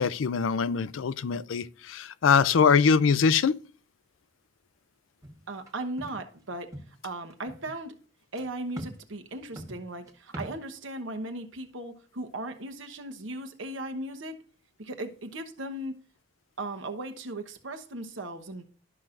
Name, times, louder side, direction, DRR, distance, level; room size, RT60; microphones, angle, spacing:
voice 1, 0.0-3.5, left 6 dB, 90° left, 0.4 m, -23 dB
sound 1, 5.2-5.7 6.0-6.2 6.5-7.0 7.3-7.8 8.4-8.5 8.8-9.0 9.3-10.6, equal, 15° right, 1.3 m, -42 dB
voice 2, 5.5-6.7 7.0-8.0 8.3-14.4 14.8-15.9 16.6-18.7, right 1 dB, 80° right, 1.1 m, -37 dB
12.0 x 6.0 x 2.5 m
head